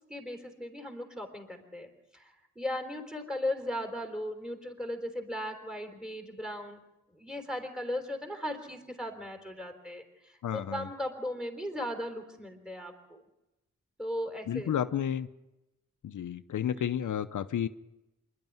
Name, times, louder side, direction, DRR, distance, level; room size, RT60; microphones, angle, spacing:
voice 1, 0.1-6.8 7.1-13.2 14.0-14.7 16.8-16.9, left 1 dB, ahead, 5 dB, 3.7 m, -37 dB
voice 2, 10.4-10.9 14.5-15.3 16.0-17.7, left 9 dB, 75° left, 10 dB, 0.7 m, -31 dB
26.5 x 11.5 x 9.4 m, 0.97 s
wide cardioid pair, 130°, 31 cm